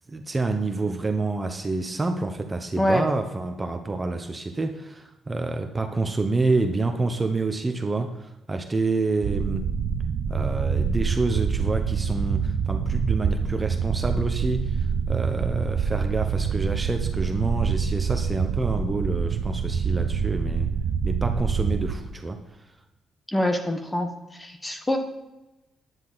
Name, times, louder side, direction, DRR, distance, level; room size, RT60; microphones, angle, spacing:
voice 1, 0.1-9.7 10.3-20.7 21.0-22.4, right 3 dB, 20° right, 6 dB, 1.0 m, -28 dB
voice 2, 2.8-3.1 23.3-24.1 24.4-25.0, left 1 dB, 15° left, 6 dB, 1.4 m, -24 dB
sound 1, 9.2-21.9, right 6 dB, 70° right, 0.8 m, -26 dB
11.0 x 9.7 x 4.1 m, 0.97 s
cardioid pair, 90°, 0 cm